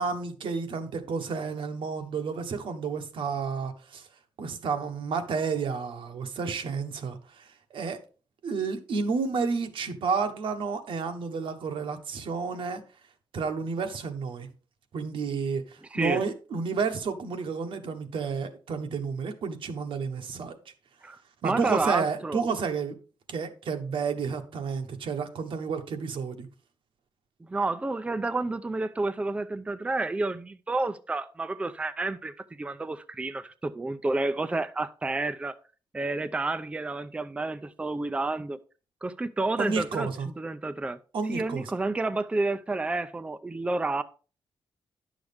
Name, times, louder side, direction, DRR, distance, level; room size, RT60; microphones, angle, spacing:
voice 1, 0.0-4.1 4.4-8.0 8.4-12.8 13.3-14.5 14.9-20.5 21.4-22.9 23.3-26.5 39.6-40.3 41.1-41.6, right 5 dB, 80° right, 1.2 m, -31 dB
voice 2, 15.9-16.2 21.0-22.4 27.5-35.6 35.9-38.6 39.0-40.1 40.4-41.0 41.3-44.0, right 2 dB, 15° right, 0.4 m, -30 dB
10.5 x 6.4 x 3.5 m
wide cardioid pair, 130°, 9 cm